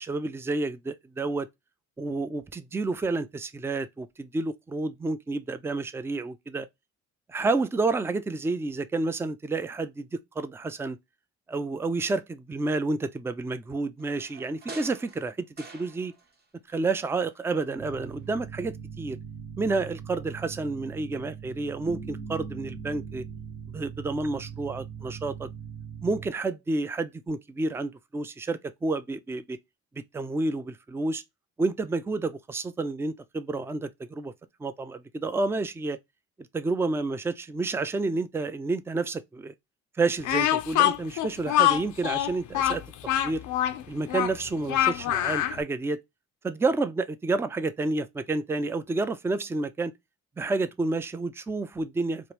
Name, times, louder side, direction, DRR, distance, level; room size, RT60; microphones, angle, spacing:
voice 1, 0.0-1.5 2.0-6.7 7.3-11.0 11.5-16.1 16.7-19.2 19.6-23.3 23.7-25.5 26.0-29.6 30.0-31.2 31.6-34.3 34.6-36.0 36.5-39.5 40.0-42.8 43.2-43.4 43.9-46.0 46.4-49.9 50.4-52.3, right 3 dB, 10° right, 0.3 m, -30 dB
sound 1, 14.0-16.4 16.7-17.8 18.1-18.2, right 3 dB, 35° right, 0.9 m, -47 dB
sound 2, 17.8-26.3, right 7 dB, 75° right, 1.0 m, -40 dB
Speech, 40.2-45.6, left 12 dB, 80° left, 0.5 m, -25 dB
3.0 x 2.5 x 3.1 m
cardioid pair, 90°, 30 cm